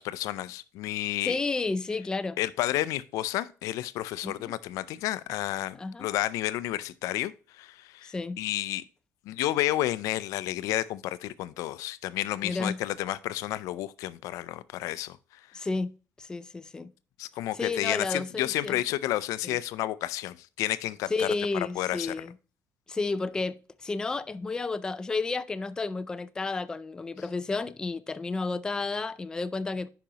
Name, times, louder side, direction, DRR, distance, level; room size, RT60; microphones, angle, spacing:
voice 1, 0.0-1.4 2.4-8.8 9.3-15.2 17.2-21.3 21.5-22.1, left 15 dB, 85° left, 0.4 m, -31 dB
voice 2, 1.2-2.4 4.2-4.5 5.7-6.1 8.0-8.4 12.4-12.8 15.5-15.9 16.2-16.9 17.5-18.8 19.4-19.6 21.1-22.3 22.9-29.9, left 3 dB, 15° left, 0.3 m, -31 dB
10.0 x 5.1 x 2.9 m
cardioid pair, 145°, 6 cm